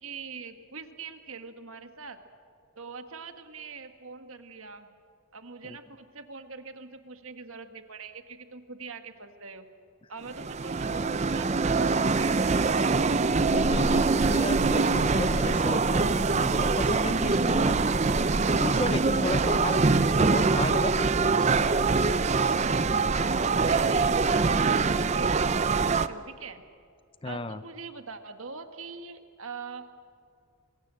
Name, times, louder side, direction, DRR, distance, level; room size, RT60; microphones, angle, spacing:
voice 1, 0.0-2.2 2.7-4.9 5.3-9.7 10.1-12.4 23.6-26.6 27.2-29.9, right 4 dB, 70° right, 7 dB, 1.7 m, -43 dB
sound 1, 10.3-26.1, right 4 dB, 30° right, 0.5 m, -24 dB
voice 2, 13.1-17.8 18.6-21.6 27.2-27.6, left 2 dB, 25° left, 13 dB, 0.6 m, -34 dB
26.5 x 22.0 x 7.6 m, 2.3 s
head